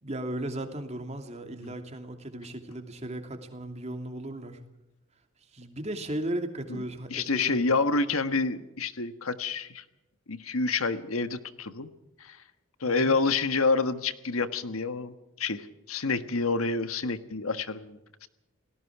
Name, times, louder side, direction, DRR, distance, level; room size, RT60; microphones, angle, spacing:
voice 1, 0.0-4.6 5.5-7.6 12.8-13.2, right 1 dB, 30° right, 5 dB, 2.8 m, -36 dB
voice 2, 7.1-9.8 10.3-11.9 12.2-12.4 12.8-18.3, left 3 dB, 90° left, 10 dB, 1.5 m, -28 dB
29.5 x 18.5 x 4.8 m, 0.94 s
head